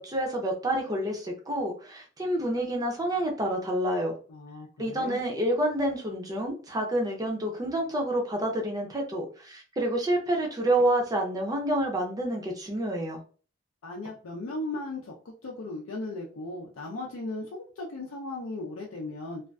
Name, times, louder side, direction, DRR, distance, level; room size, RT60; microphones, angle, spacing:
voice 1, 0.0-4.1 4.8-13.2, right 1 dB, 20° right, 1 dB, 0.5 m, -28 dB
voice 2, 4.3-5.2 13.8-19.4, left 2 dB, 85° left, -2 dB, 0.5 m, -37 dB
2.5 x 2.3 x 2.2 m, 0.39 s
head